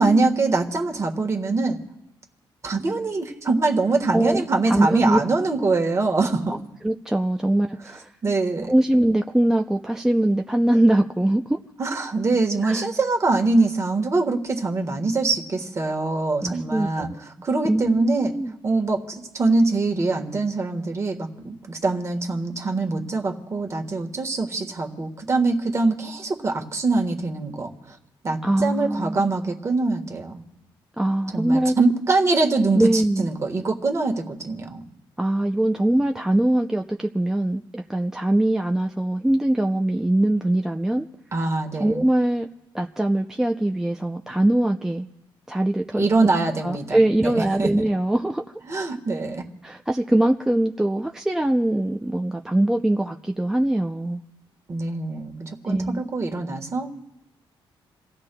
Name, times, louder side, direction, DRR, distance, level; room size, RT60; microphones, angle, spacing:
voice 1, 0.0-1.8 2.6-6.5 8.2-8.7 11.8-17.1 17.4-18.4 18.6-28.0 28.2-30.4 31.3-34.8 41.3-42.0 45.9-47.7 48.7-49.4 54.7-56.9, right 3 dB, 35° right, 3 dB, 1.4 m, -23 dB
voice 2, 4.1-5.2 6.8-8.1 8.7-11.6 12.6-12.9 16.4-17.1 17.6-18.5 28.4-29.3 31.0-31.7 32.7-33.3 35.2-41.1 41.7-42.5 42.7-45.1 45.5-46.1 46.6-48.5 49.6-54.2 55.7-56.0, right 1 dB, 5° right, 3 dB, 0.4 m, -22 dB
28.5 x 16.0 x 2.2 m, 0.95 s
cardioid pair, 140°, 9 cm